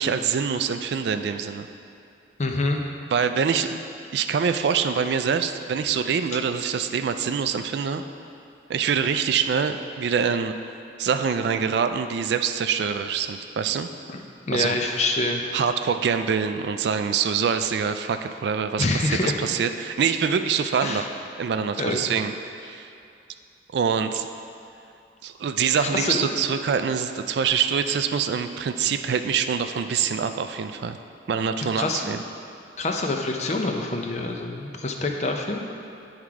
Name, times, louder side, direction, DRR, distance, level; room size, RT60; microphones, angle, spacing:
voice 1, 0.0-1.7 3.1-3.8 4.1-8.0 8.7-10.5 11.0-13.9 14.5-14.8 15.5-21.1 21.4-22.3 22.6-22.9 23.7-24.2 25.2-31.0 31.3-32.2, right 6 dB, 60° right, 9 dB, 0.3 m, -25 dB
voice 2, 2.4-2.8 14.1-14.2 14.5-15.4 18.8-19.4 20.8-21.0 21.8-22.0 25.8-26.4 31.7-32.2 32.8-35.6, left 2 dB, 35° left, 2 dB, 0.5 m, -26 dB
10.5 x 3.7 x 4.7 m, 2.6 s
head